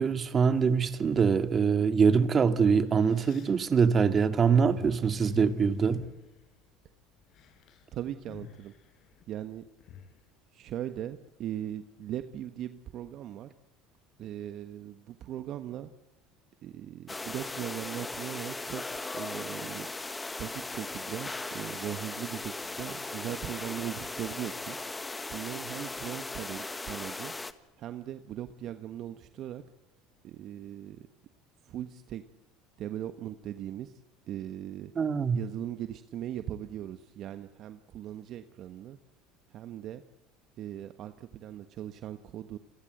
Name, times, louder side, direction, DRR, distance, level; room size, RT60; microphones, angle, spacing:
voice 1, 0.0-6.0 35.0-35.4, right 6 dB, 30° right, 2.3 m, -24 dB
sound 1, 0.8-1.5 2.2-2.3 2.7-6.9 7.2-7.9 8.1-10.2, left 8 dB, 50° left, 5.1 m, -47 dB
voice 2, 7.9-8.7 9.3-9.6 10.5-13.5 14.2-15.9 16.6-18.8 19.1-19.9 20.4-24.8 25.3-27.3 27.8-29.6 30.2-31.1 31.7-32.2 32.8-33.9 34.3-34.9 35.3-39.0 39.5-40.0 40.6-42.6, right 11 dB, 50° right, 1.3 m, -39 dB
sound 2, 17.1-27.5, left 2 dB, 15° left, 1.6 m, -38 dB
30.0 x 22.0 x 8.0 m
supercardioid pair, 100°, 0 cm